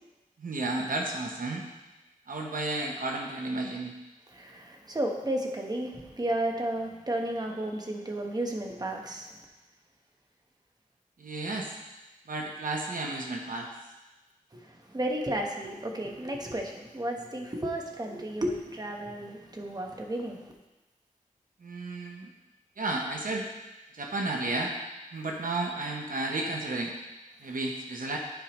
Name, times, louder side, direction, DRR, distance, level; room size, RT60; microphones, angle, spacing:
voice 1, 0.4-1.6 2.3-3.9 11.2-11.8 12.3-13.7 21.6-22.3 22.8-23.5 23.9-24.7 25.1-26.9 27.4-28.2, right 2 dB, 75° right, 1 dB, 0.9 m, -32 dB
voice 2, 4.3-9.3 14.5-20.5, right 1 dB, 30° right, 1 dB, 1.1 m, -33 dB
11.5 x 4.9 x 3.0 m, 1.1 s
wide cardioid pair, 85°, 14 cm